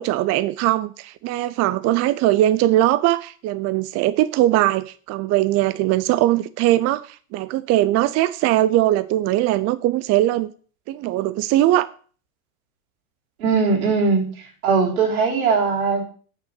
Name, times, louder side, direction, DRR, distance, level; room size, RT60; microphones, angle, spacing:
voice 1, 0.0-10.5 10.9-11.9, right 14 dB, 40° right, 0.5 m, -20 dB
voice 2, 13.4-14.3 14.6-16.1, right 5 dB, 90° right, 3.4 m, -20 dB
6.1 x 6.1 x 6.9 m
hypercardioid pair, 105°, 42 cm